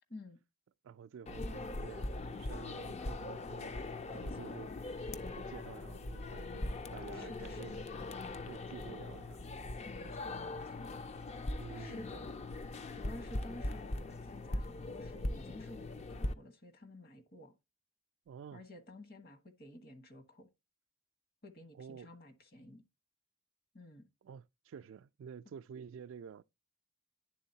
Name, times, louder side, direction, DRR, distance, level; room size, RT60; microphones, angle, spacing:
voice 1, 0.8-3.8 4.1-4.7 5.4-6.7 6.9-7.7 8.5-9.4 11.6-12.0 18.3-18.6 21.7-22.1 24.2-26.4, right 7 dB, 65° right, 0.3 m, -50 dB
sound 1, 1.3-16.3, left 2 dB, 35° left, 0.4 m, -41 dB
voice 2, 4.1-4.6 7.1-7.8 9.8-11.0 11.7-12.3 12.9-17.5 18.5-20.5 21.4-22.8 23.7-24.1, left 1 dB, 50° left, 1.2 m, -52 dB
10.5 x 3.7 x 2.7 m
head